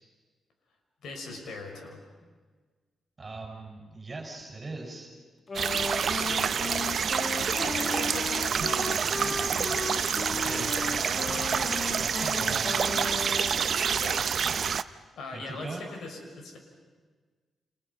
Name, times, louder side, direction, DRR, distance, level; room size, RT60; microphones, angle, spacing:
voice 1, 1.0-2.0 6.1-6.5 7.4-10.1 10.4-11.6 12.5-12.6 13.9-14.2 14.9-16.6, left 3 dB, 80° left, 2 dB, 6.2 m, -41 dB
voice 2, 3.2-5.1 10.3-10.7 12.0-12.8 15.3-15.9, right 3 dB, 35° right, 1 dB, 5.9 m, -40 dB
Wind instrument woodwind instrument, 5.5-13.7, left 4 dB, 40° left, 1.8 m, -36 dB
sound 1, 5.5-14.8, right 7 dB, 60° right, 0.8 m, -28 dB
29.5 x 29.5 x 5.7 m, 1.4 s
cardioid pair, 85°, 0 cm